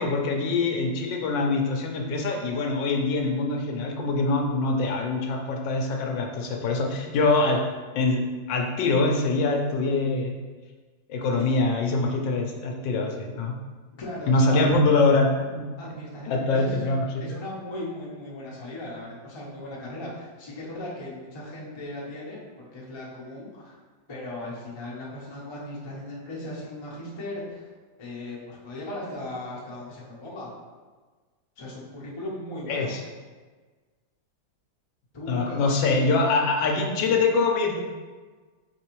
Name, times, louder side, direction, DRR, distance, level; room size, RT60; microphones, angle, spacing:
voice 1, 0.0-7.6 7.9-10.3 11.1-13.5 14.3-15.3 16.3-17.1 32.7-33.0 35.3-37.8, left 3 dB, 80° left, 1 dB, 1.3 m, -24 dB
voice 2, 14.0-14.8 15.8-16.9 17.2-23.8 24.1-27.7 28.0-30.5 31.6-32.9 35.1-35.6 35.8-36.0 37.0-37.2, left 1 dB, 30° left, -5 dB, 0.5 m, -37 dB
4.7 x 3.4 x 3.0 m, 1.4 s
omnidirectional pair, 2.0 m